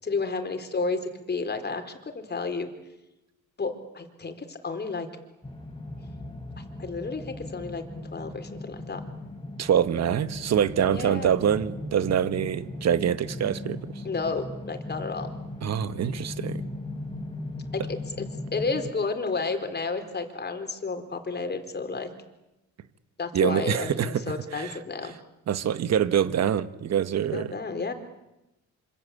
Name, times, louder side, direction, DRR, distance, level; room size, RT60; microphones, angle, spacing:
voice 1, 0.0-2.7 3.6-5.1 6.6-7.8 8.1-9.0 10.8-11.3 14.0-15.3 17.7-18.2 18.5-22.1 23.2-25.2 27.3-27.9, left 4 dB, 35° left, 7 dB, 4.5 m, -31 dB
sound 1, 5.4-18.9, left 2 dB, 15° left, 5.2 m, -38 dB
voice 2, 9.6-13.8 15.6-16.6 23.3-24.2 24.5-24.8 25.5-27.5, right 9 dB, 60° right, 12 dB, 1.6 m, -25 dB
26.5 x 26.5 x 8.5 m, 0.95 s
cardioid pair, 90°, 30 cm